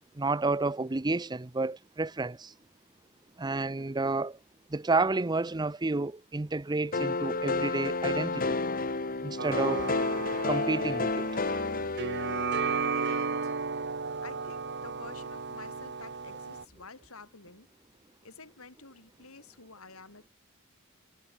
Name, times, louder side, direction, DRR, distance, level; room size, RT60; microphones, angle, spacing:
voice 1, 0.2-2.5 3.4-4.4 4.7-8.6 9.2-9.9 10.5-11.3, right 3 dB, 20° right, 0.6 m, -30 dB
sound 1, 6.9-12.8, left 3 dB, 40° left, 1.6 m, -31 dB
sound 2, 9.4-16.6, right 5 dB, 55° right, 1.6 m, -34 dB
voice 2, 12.8-13.5 14.2-17.7 18.2-20.3, left 4 dB, 85° left, 5.0 m, -50 dB
head